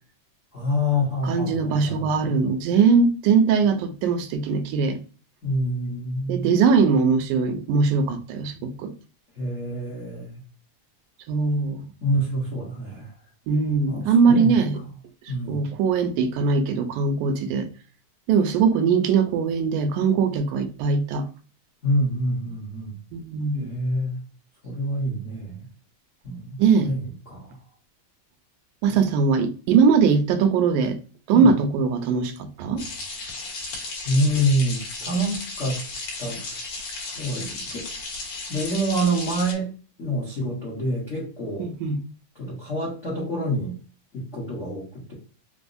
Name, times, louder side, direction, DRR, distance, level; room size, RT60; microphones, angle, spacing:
voice 1, 0.5-2.5 5.4-6.5 9.4-10.4 12.0-13.1 13.9-14.5 15.3-15.6 21.8-22.9 23.6-24.1 24.6-25.7 26.2-27.6 28.9-29.3 31.3-31.5 34.0-35.8 36.2-36.6 37.0-37.9 38.5-39.7 40.0-41.7 42.3-43.7 44.1-45.1, equal, 80° left, 0.6 m, -27 dB
voice 2, 1.2-5.0 6.3-8.9 11.3-11.8 13.5-14.8 15.5-17.7 18.3-21.3 23.1-23.7 26.6-26.9 28.8-31.0 31.3-32.8 41.6-42.0, right 5 dB, 90° right, 2.1 m, -21 dB
sound 1, 32.8-39.5, left 3 dB, 65° left, 1.9 m, -34 dB
5.2 x 2.0 x 2.5 m
omnidirectional pair, 3.5 m